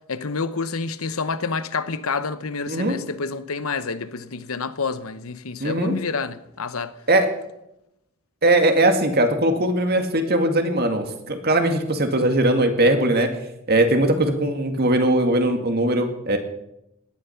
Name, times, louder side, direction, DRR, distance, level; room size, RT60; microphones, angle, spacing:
voice 1, 0.1-6.9, left 4 dB, 85° left, 1.0 m, -28 dB
voice 2, 2.7-3.0 5.6-6.0 7.1-7.3 8.4-13.3 13.7-16.4, right 1 dB, 45° right, 2.1 m, -20 dB
18.0 x 11.5 x 5.9 m
head